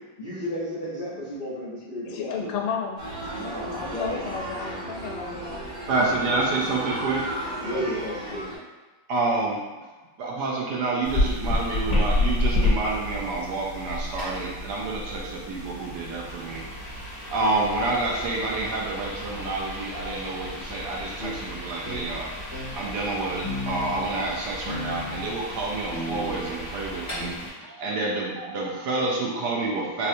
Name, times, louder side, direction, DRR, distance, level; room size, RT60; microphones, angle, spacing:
voice 1, 0.2-2.5 3.3-4.3 7.6-8.5, equal, 65° left, -10 dB, 0.4 m, -33 dB
voice 2, 2.0-3.0 3.6-5.6 6.3-6.4 7.7-8.1, left 6 dB, 90° left, 1 dB, 1.4 m, -33 dB
sound 1, 3.0-8.6, right 1 dB, 45° right, 0.8 m, -35 dB
voice 3, 5.9-7.2 9.1-9.6 10.2-16.6 17.2-22.3 22.7-30.1, right 3 dB, 70° right, -3 dB, 1.1 m, -28 dB
sound 2, 11.0-27.5, left 1 dB, 15° left, 1.0 m, -31 dB
sound 3, 21.2-21.4 21.9-22.1 22.5-22.7 23.4-24.1 24.7-25.4 25.9-26.7 27.2-27.3, left 1 dB, 10° right, 1.1 m, -34 dB
4.1 x 2.4 x 2.6 m, 1.3 s
omnidirectional pair, 2.0 m